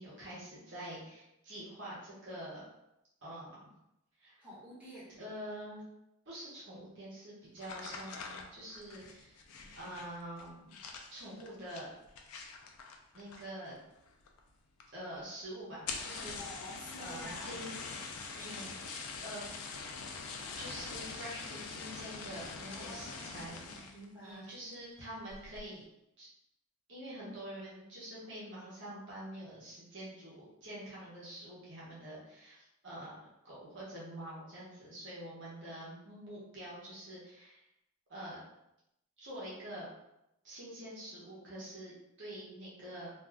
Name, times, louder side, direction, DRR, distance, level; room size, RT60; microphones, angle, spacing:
voice 1, 0.0-2.6 3.2-3.6 4.2-4.4 5.2-5.8 6.3-9.4 9.7-10.8 11.1-11.9 13.1-13.8 14.9-16.6 17.0-18.7 19.2-19.4 20.6-25.9 26.2-26.3 26.9-33.2 33.4-37.7 38.1-38.4 39.2-39.9 40.4-43.1, right 1 dB, 55° right, -7 dB, 0.9 m, -46 dB
voice 2, 4.4-5.2 16.4-17.5 22.7-24.7, equal, 5° right, -12 dB, 1.2 m, -50 dB
sound 1, 7.6-13.7 14.0-14.5 14.8-14.9 15.2-15.3 15.7-24.1 24.5-24.9 25.3-25.7, left 4 dB, 85° left, 0.4 m, -44 dB
2.5 x 2.4 x 3.3 m, 0.86 s
head